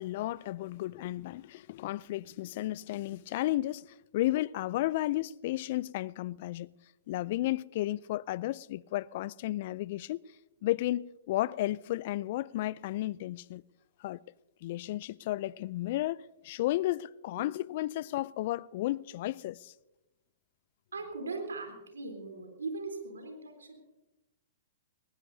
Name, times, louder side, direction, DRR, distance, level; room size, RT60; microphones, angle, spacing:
voice 1, 0.0-6.7 7.1-10.2 10.6-13.6 14.0-14.2 14.6-19.7, left 16 dB, 50° left, 0.4 m, -33 dB
voice 2, 20.9-23.8, right 3 dB, 90° right, 3.6 m, -39 dB
21.0 x 19.5 x 2.7 m
hypercardioid pair, 120°, 0 cm